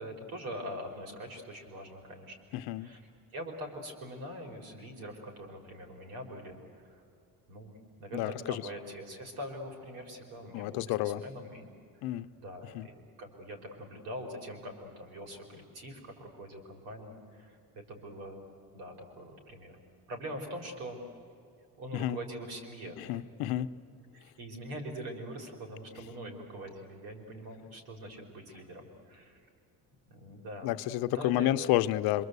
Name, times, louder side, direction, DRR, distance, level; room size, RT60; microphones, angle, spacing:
voice 1, 0.0-2.4 2.7-7.0 7.5-7.7 8.0-11.7 12.0-12.1 12.4-18.4 18.7-19.8 20.1-21.0 21.8-23.2 24.1-29.5 30.1-30.8 31.1-31.6, equal, 85° right, 2 dB, 4.9 m, -43 dB
voice 2, 2.5-2.9 8.1-8.6 10.5-11.2 12.0-12.3 12.7-12.9 21.9-22.2 23.0-23.7 30.6-32.3, left 14 dB, 90° left, 12 dB, 0.8 m, -30 dB
26.5 x 24.5 x 8.2 m, 2.4 s
cardioid pair, 120°, 35 cm